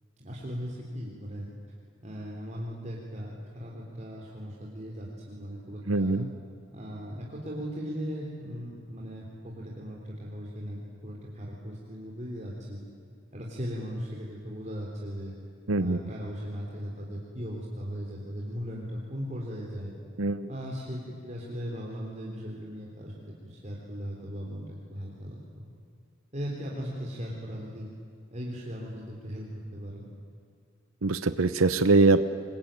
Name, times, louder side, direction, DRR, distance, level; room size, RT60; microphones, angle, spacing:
voice 1, 0.2-1.5 2.0-6.1 6.7-12.8 13.3-15.3 15.8-20.0 20.5-23.1 23.4-25.7 26.3-27.9 28.3-30.1, equal, 35° right, -2 dB, 3.5 m, -38 dB
voice 2, 5.9-6.3 15.7-16.0 20.2-20.5 31.0-32.2, right 3 dB, 90° right, 11 dB, 1.0 m, -23 dB
26.5 x 22.5 x 9.0 m, 2.5 s
head